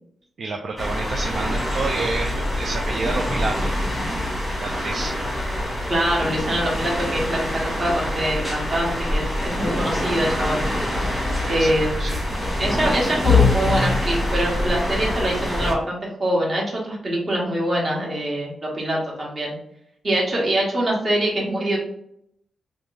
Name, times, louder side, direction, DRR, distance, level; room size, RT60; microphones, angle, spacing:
voice 1, 0.4-3.8 4.6-5.2 11.4-12.2, right 3 dB, 60° right, 2 dB, 0.4 m, -29 dB
sound 1, 0.8-15.7, left 2 dB, 5° right, 1.3 m, -24 dB
voice 2, 5.9-10.6 11.5-12.1 12.6-19.6 20.0-21.8, right 1 dB, 40° right, -3 dB, 1.4 m, -24 dB
3.3 x 2.6 x 3.2 m, 0.72 s
cardioid pair, 105°, 0 cm